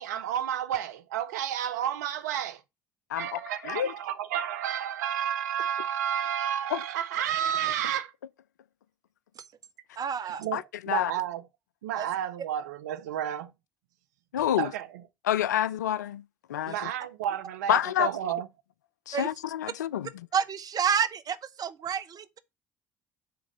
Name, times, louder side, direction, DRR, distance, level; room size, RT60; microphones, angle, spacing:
voice 1, 0.0-2.6 3.2-8.1 10.2-11.4 11.8-13.5 14.6-14.9 16.7-18.5, right 10 dB, 80° right, 0.7 m, -31 dB
voice 2, 3.1-3.9 6.7-6.8 10.5-11.1 14.3-14.7 15.3-16.2 16.5-16.9 17.7-18.1 19.1-20.1, left 11 dB, 85° left, 0.4 m, -28 dB
voice 3, 10.0-10.4 11.9-12.1 19.1-19.3 20.3-22.4, right 7 dB, 45° right, 0.9 m, -29 dB
6.9 x 3.8 x 6.5 m
hypercardioid pair, 60°, 9 cm